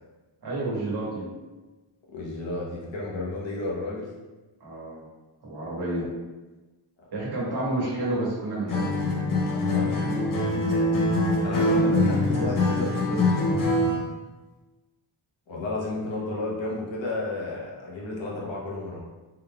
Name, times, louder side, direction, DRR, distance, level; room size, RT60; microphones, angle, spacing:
voice 1, 0.4-1.3 4.6-5.0 5.4-6.1 7.1-8.9 9.9-10.0, right 2 dB, 50° right, -5 dB, 1.2 m, -30 dB
voice 2, 2.1-4.1 9.5-10.4 11.4-13.8 15.5-19.0, left 2 dB, 65° left, -4 dB, 1.0 m, -32 dB
Acoustic guitar, 8.7-14.1, left 2 dB, 40° left, 0.7 m, -24 dB
3.8 x 3.5 x 2.2 m, 1.2 s
wide cardioid pair, 165°, 49 cm